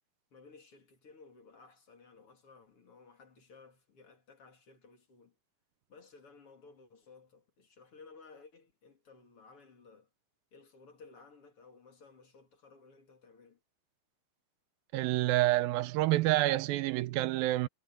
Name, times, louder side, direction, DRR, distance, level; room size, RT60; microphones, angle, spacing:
voice 1, 0.3-5.4 5.9-10.1 10.5-13.6, left 4 dB, 40° left, 3.2 m, -57 dB
voice 2, 14.9-17.7, right 17 dB, 80° right, 2.4 m, -28 dB
omnidirectional pair, 4.2 m